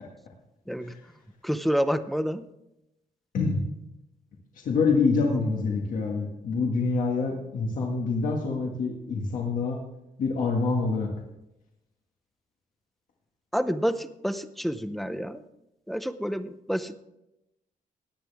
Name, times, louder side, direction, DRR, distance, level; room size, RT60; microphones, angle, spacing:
voice 1, 1.4-2.4 13.5-15.4 15.9-16.9, equal, ahead, 12 dB, 0.5 m, -28 dB
voice 2, 4.7-9.8 10.2-11.1, left 4 dB, 70° left, 0 dB, 1.7 m, -26 dB
17.0 x 10.5 x 3.5 m, 0.88 s
wide cardioid pair, 165°, 14 cm